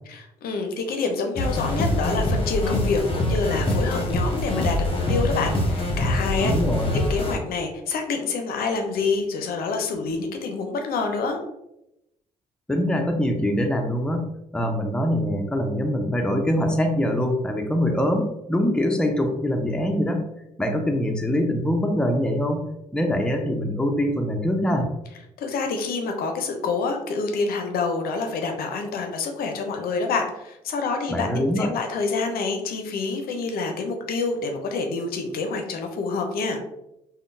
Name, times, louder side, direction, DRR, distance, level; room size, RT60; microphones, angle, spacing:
voice 1, 0.1-6.5 6.9-11.4 25.4-36.6, left 4 dB, 65° left, 4 dB, 0.5 m, -27 dB
sound 1, 1.4-7.4, left 1 dB, 35° left, 0.9 m, -24 dB
voice 2, 6.4-6.9 12.7-14.3 14.5-20.2 20.6-22.6 22.9-24.9 31.1-31.7, equal, 5° left, 3 dB, 0.5 m, -23 dB
3.6 x 2.1 x 2.5 m, 0.87 s
hypercardioid pair, 50°, 17 cm